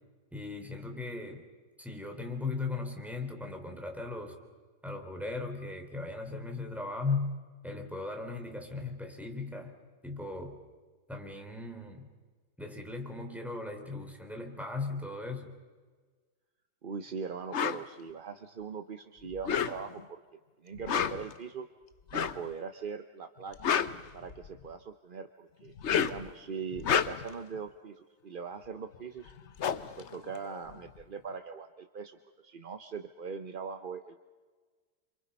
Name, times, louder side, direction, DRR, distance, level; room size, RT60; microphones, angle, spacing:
voice 1, 0.3-1.4 1.8-4.3 4.8-7.3 7.6-9.7 10.0-10.6 11.1-12.1 12.6-15.5, left 3 dB, ahead, 4 dB, 3.4 m, -37 dB
voice 2, 16.8-20.2 20.6-21.6 22.1-23.6 24.1-25.7 26.0-29.3 30.0-34.2, right 6 dB, 40° right, 8 dB, 0.8 m, -41 dB
sound 1, 17.5-17.8 19.3-20.1 20.7-21.3 22.1-22.5 23.4-24.7 25.7-26.3 26.7-27.4 28.9-29.0 29.3-31.0, left 8 dB, 50° left, 1.0 m, -31 dB
29.0 x 27.0 x 5.4 m, 1.4 s
omnidirectional pair, 1.8 m